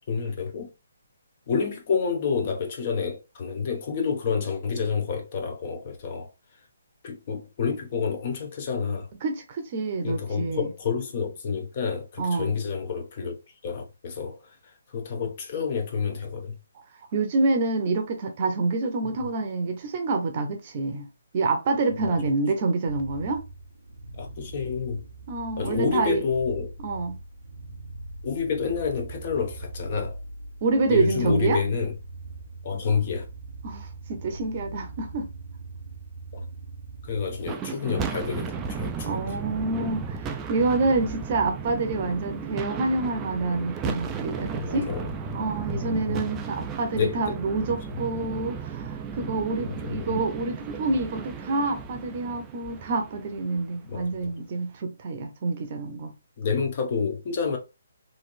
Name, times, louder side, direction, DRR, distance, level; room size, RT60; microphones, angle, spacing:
voice 1, 0.1-0.7 1.5-6.3 7.0-9.1 10.0-13.3 13.6-14.4 14.9-16.6 19.0-19.1 22.1-22.2 24.2-25.0 25.6-26.7 28.2-30.2 30.9-31.9 32.6-33.2 36.3-36.5 37.0-39.2 44.6-45.1 45.7-46.3 46.9-47.3 49.6-50.2 53.9-54.3 56.4-57.6, left 5 dB, 40° left, 0.8 m, -29 dB
voice 2, 9.2-10.7 12.2-12.5 17.1-21.1 21.3-23.4 25.3-26.2 26.8-27.2 30.6-31.6 33.6-35.3 39.0-44.9 45.3-56.1, right 3 dB, 35° right, 0.7 m, -27 dB
sound 1, 22.8-37.5, right 2 dB, 80° right, 0.6 m, -41 dB
sound 2, 37.4-53.8, right 5 dB, 15° right, 0.3 m, -35 dB
3.1 x 2.6 x 2.5 m
hypercardioid pair, 160°, 0 cm